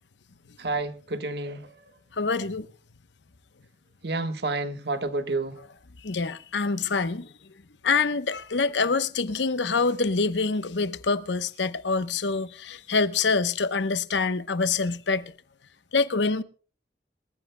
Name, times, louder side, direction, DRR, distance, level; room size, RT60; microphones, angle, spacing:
voice 1, 0.6-1.9 4.0-5.6, right 2 dB, 70° right, 1.4 m, -30 dB
voice 2, 2.1-2.7 6.0-7.3 7.8-15.3 15.9-16.4, left 4 dB, 85° left, 0.9 m, -26 dB
26.5 x 15.0 x 2.2 m
head